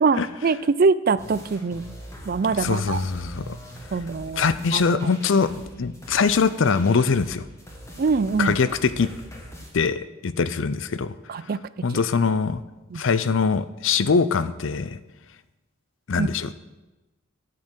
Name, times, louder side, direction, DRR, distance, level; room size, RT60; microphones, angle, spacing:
voice 1, 0.0-1.9 2.2-3.0 3.9-4.8 8.0-8.6 11.3-11.6 12.9-13.0 16.2-16.3, right 4 dB, 45° right, 16 dB, 0.4 m, -23 dB
sound 1, 1.2-9.7, equal, 15° left, 1.6 m, -42 dB
voice 2, 2.6-3.6 4.4-5.5 5.8-7.4 8.4-9.1 9.7-11.1 11.8-12.6 12.9-15.0 16.1-16.5, left 5 dB, 70° left, 15 dB, 0.5 m, -22 dB
11.0 x 7.6 x 6.3 m, 1.1 s
head